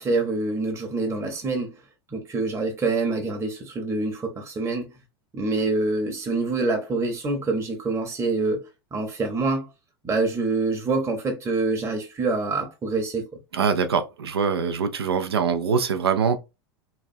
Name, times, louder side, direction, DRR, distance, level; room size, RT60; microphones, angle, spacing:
voice 1, 0.0-1.7 2.1-4.9 5.3-9.7 10.0-13.4, right 3 dB, 20° right, 0.9 m, -26 dB
voice 2, 13.5-16.4, right 6 dB, 85° right, 0.5 m, -23 dB
3.0 x 2.4 x 2.5 m
hypercardioid pair, 90°, 13 cm